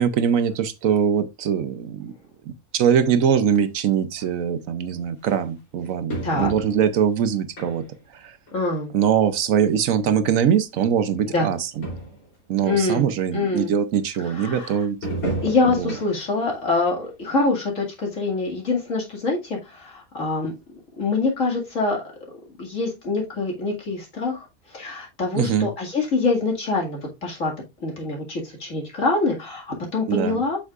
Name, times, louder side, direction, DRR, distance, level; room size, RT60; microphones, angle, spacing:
voice 1, 0.0-2.1 2.7-7.8 8.1-8.4 8.9-11.7 12.5-15.0 15.7-16.0 25.3-25.7 30.1-30.4, right 8 dB, 70° right, 1.1 m, -22 dB
sound 1, 4.2-4.3 5.2-5.3 6.1-7.0 7.6-8.1 8.5-8.6 9.5-9.6 9.8-9.9 10.8-10.9 11.2-11.3 11.5-11.6 11.8-12.3 12.8-12.9 15.0-16.3 16.7-16.9 17.4-17.5, right 1 dB, 80° left, 3.8 m, -31 dB
voice 2, 8.5-8.9 11.3-11.5 12.6-13.1 13.3-13.7 14.3-14.8 15.4-20.5 21.0-22.0 22.6-24.5 24.7-27.5 27.8-30.6, left 3 dB, 60° left, 2.4 m, -25 dB
7.9 x 6.4 x 2.4 m
omnidirectional pair, 1.5 m